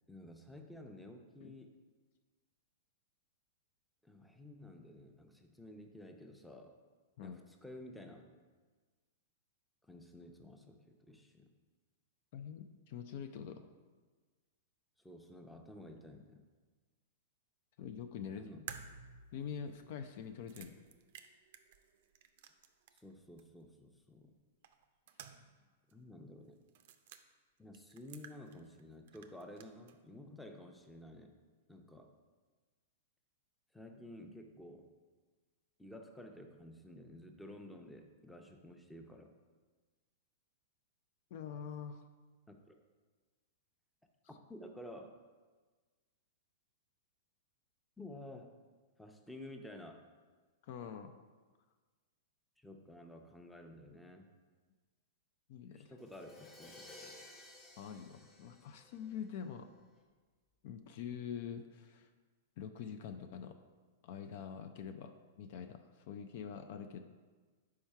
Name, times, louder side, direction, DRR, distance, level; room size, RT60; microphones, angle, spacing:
voice 1, 0.1-1.7 4.0-6.8 7.2-8.3 9.8-11.5 15.0-16.4 18.3-18.6 22.9-24.3 25.9-26.6 27.6-31.3 31.7-32.1 33.7-34.9 35.8-39.3 42.5-42.8 44.5-45.2 48.0-48.5 49.0-50.1 52.6-54.3 55.7-57.2, left 1 dB, 5° left, 4 dB, 0.6 m, -52 dB
voice 2, 12.3-13.6 17.8-18.5 19.3-20.7 41.3-42.0 50.6-51.1 55.5-55.9 57.8-59.7 60.6-62.1 62.6-63.6 64.0-67.0, left 7 dB, 55° left, 7 dB, 0.4 m, -45 dB
sound 1, 18.7-23.1 23.4-23.5 24.6-25.6 25.9-26.0 26.7-27.2 27.7-28.8 29.1-30.0, right 8 dB, 60° right, 0.4 m, -53 dB
Crash cymbal, 56.0-59.7, left 2 dB, 30° left, 1.2 m, -56 dB
4.8 x 4.4 x 5.5 m, 1.4 s
hypercardioid pair, 110°, 0 cm